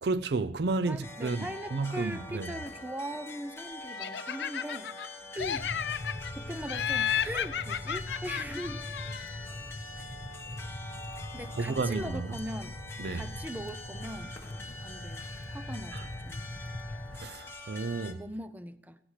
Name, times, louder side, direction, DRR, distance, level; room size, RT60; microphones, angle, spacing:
voice 1, 0.0-2.5 11.6-12.4 13.0-13.3 15.9-16.1 17.1-18.2, right 3 dB, 65° right, 0.5 m, -32 dB
voice 2, 0.9-4.9 5.3-5.7 6.3-8.8 11.3-12.8 13.1-16.5 18.0-19.0, right 1 dB, 10° right, 0.5 m, -40 dB
sound 1, 1.0-18.1, left 2 dB, 15° left, 1.3 m, -45 dB
Laughter, 4.0-5.1 5.4-6.3 6.7-9.5, left 8 dB, 70° left, 0.5 m, -33 dB
sound 2, 5.4-17.3, left 1 dB, 55° left, 1.4 m, -42 dB
17.0 x 15.5 x 3.2 m
head